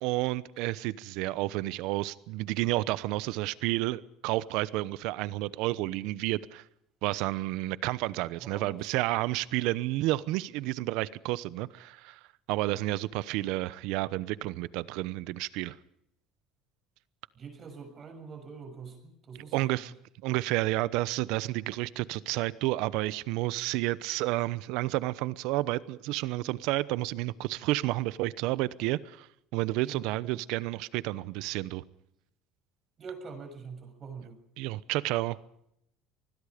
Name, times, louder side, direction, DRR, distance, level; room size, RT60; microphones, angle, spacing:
voice 1, 0.0-6.6 7.0-12.2 12.5-15.8 19.5-19.9 20.2-29.3 29.5-31.8 34.6-35.4, right 18 dB, 75° right, 18 dB, 0.9 m, -30 dB
voice 2, 8.4-8.8 17.3-19.9 29.8-30.1 33.0-34.4, right 5 dB, 35° right, 6 dB, 6.6 m, -44 dB
26.5 x 20.0 x 5.2 m, 0.76 s
supercardioid pair, 110°, 0 cm